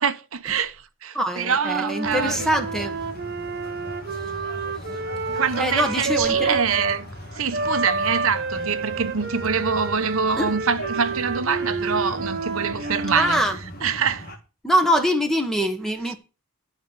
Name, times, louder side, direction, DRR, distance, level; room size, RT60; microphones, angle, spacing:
voice 1, 0.0-2.5 5.3-7.1 7.3-13.5 13.8-14.3, right 6 dB, 70° right, 0.9 m, -25 dB
voice 2, 1.1-3.0 5.6-6.6 10.4-10.6 13.1-13.6 14.6-16.2, equal, ahead, 1.4 m, -23 dB
Wind instrument woodwind instrument, 1.6-7.0 7.5-13.4, right 4 dB, 45° right, 1.2 m, -29 dB
sound 1, 2.0-14.4, equal, 40° left, 2.2 m, -38 dB
12.5 x 4.7 x 8.1 m
head